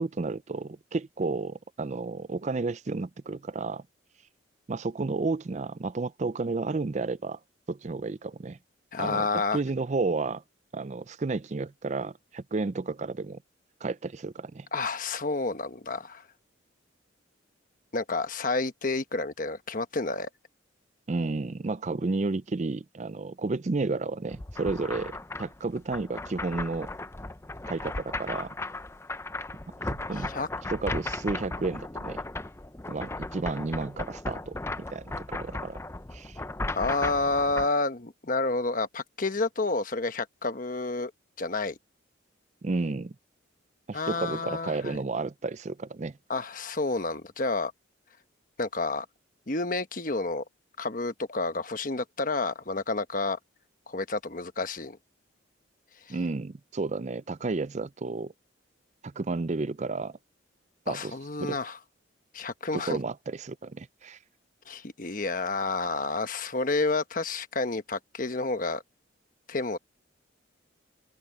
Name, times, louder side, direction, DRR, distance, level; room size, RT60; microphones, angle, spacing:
voice 1, 0.0-3.8 4.7-7.4 7.7-8.6 9.0-10.4 10.7-13.4 13.8-14.7 21.1-25.1 25.4-26.9 27.7-28.6 29.9-30.3 30.7-32.2 32.9-34.6 34.9-35.8 36.1-36.4 42.6-43.1 43.9-46.2 56.1-58.3 59.0-60.2 60.9-61.1 61.4-61.6 62.7-64.2, right 3 dB, 35° right, 0.4 m, -32 dB
voice 2, 8.9-9.6 14.7-16.2 17.9-20.3 30.3-30.5 36.7-41.1 41.4-41.8 43.9-45.0 46.3-47.7 48.6-49.1 49.5-50.4 50.8-53.4 53.9-55.0 56.1-56.2 60.9-61.8 62.3-63.0 64.7-68.8 69.5-69.8, left 3 dB, 40° left, 1.2 m, -30 dB
sound 1, 24.3-37.7, left 2 dB, 15° left, 0.5 m, -36 dB
head